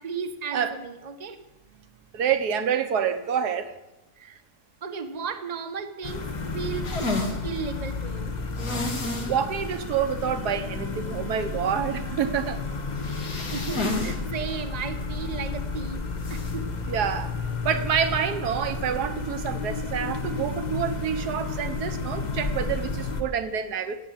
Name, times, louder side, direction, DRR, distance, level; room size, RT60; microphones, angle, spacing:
voice 1, 0.0-1.4 4.2-4.4 4.8-6.9 7.4-8.4 13.5-16.7, right 6 dB, 30° right, 8 dB, 1.0 m, -35 dB
voice 2, 2.1-3.7 9.3-12.6 16.9-17.3 17.6-24.0, right 8 dB, 70° right, 10 dB, 1.6 m, -27 dB
sound 1, 6.0-23.2, left 3 dB, 30° left, 1.0 m, -32 dB
sound 2, 6.8-7.4 8.6-9.3 9.7-9.8 10.2-10.3 13.0-14.2 14.5-14.6 16.2-16.6, left 2 dB, 70° left, 2.5 m, -30 dB
16.5 x 8.9 x 7.5 m, 0.96 s
omnidirectional pair, 1.8 m